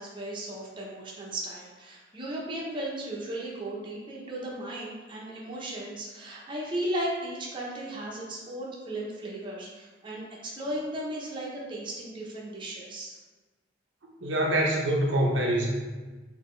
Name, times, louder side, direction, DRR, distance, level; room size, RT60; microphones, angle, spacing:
voice 1, 0.0-13.2, right 1 dB, 25° right, -4 dB, 0.8 m, -36 dB
voice 2, 14.0-15.7, right 1 dB, 80° right, -2 dB, 0.7 m, -25 dB
4.1 x 2.7 x 3.2 m, 1.3 s
head